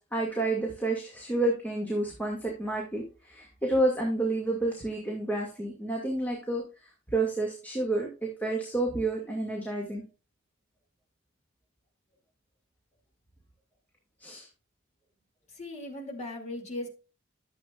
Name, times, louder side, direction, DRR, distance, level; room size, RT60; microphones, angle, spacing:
voice 1, 0.0-6.6 7.1-10.0 14.2-14.5, right 2 dB, 10° left, -2 dB, 2.3 m, -30 dB
voice 2, 15.5-16.9, left 1 dB, 35° left, 1 dB, 2.8 m, -38 dB
13.5 x 7.8 x 2.5 m, 0.33 s
head